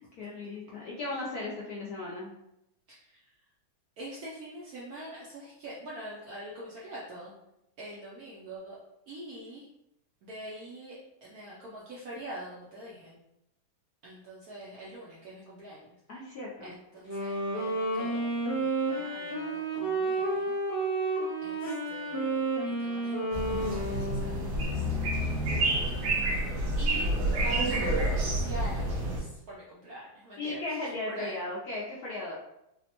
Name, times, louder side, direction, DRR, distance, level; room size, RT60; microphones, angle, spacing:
voice 1, 0.0-2.3 16.1-16.7 30.4-32.3, left 2 dB, 75° left, -5 dB, 0.9 m, -36 dB
voice 2, 2.9-3.2 4.0-7.4 7.8-8.8 9.1-9.7 10.2-13.2 14.0-15.9 16.6-20.6 21.4-27.1 27.4-31.4, right 1 dB, 75° right, -5 dB, 0.8 m, -44 dB
Wind instrument woodwind instrument, 17.0-24.7, right 2 dB, 30° left, 0.7 m, -31 dB
sound 1, 23.3-29.2, right 1 dB, 90° right, 1.7 m, -29 dB
4.1 x 2.1 x 2.8 m, 0.84 s
omnidirectional pair, 2.2 m